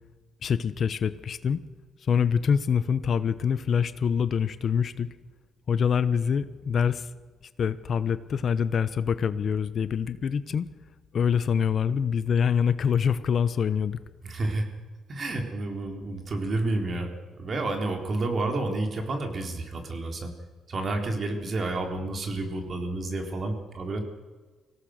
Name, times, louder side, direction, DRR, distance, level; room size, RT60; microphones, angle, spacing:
voice 1, 0.4-1.6 2.1-5.1 5.7-7.1 7.6-10.7 11.1-14.0, left 7 dB, 55° left, 14 dB, 1.0 m, -25 dB
voice 2, 14.2-14.7 15.1-17.1 17.4-20.3 20.7-24.0, right 2 dB, 45° right, 4 dB, 4.0 m, -30 dB
24.5 x 17.0 x 6.6 m, 1.4 s
cardioid pair, 90°, 0 cm